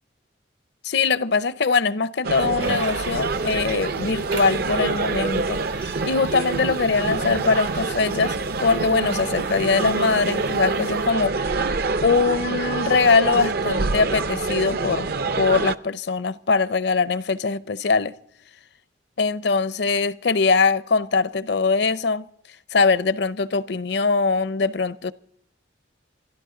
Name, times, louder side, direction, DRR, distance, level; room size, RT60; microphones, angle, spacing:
voice 1, 0.8-11.5 12.0-15.1 15.4-18.1 19.2-22.2 22.7-25.1, left 4 dB, 60° left, 0.6 m, -22 dB
sound 1, 2.2-15.8, right 3 dB, 55° right, 0.6 m, -26 dB
sound 2, 2.6-11.1, right 4 dB, 80° right, 3.2 m, -39 dB
28.0 x 12.5 x 3.8 m
head